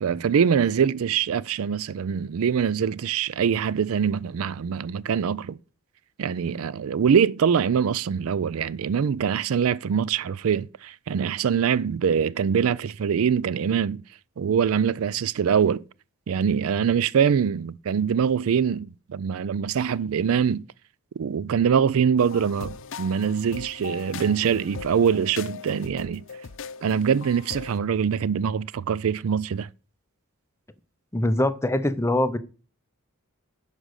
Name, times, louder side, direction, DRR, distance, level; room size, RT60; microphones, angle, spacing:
voice 1, 0.0-5.6 6.2-14.0 14.4-15.8 16.3-20.6 21.2-26.2 26.8-29.7, right 7 dB, 65° right, 0.4 m, -23 dB
sound 1, 22.2-27.8, left 6 dB, 60° left, 0.7 m, -39 dB
voice 2, 31.1-32.4, left 1 dB, 10° left, 0.7 m, -23 dB
11.0 x 5.1 x 6.6 m
head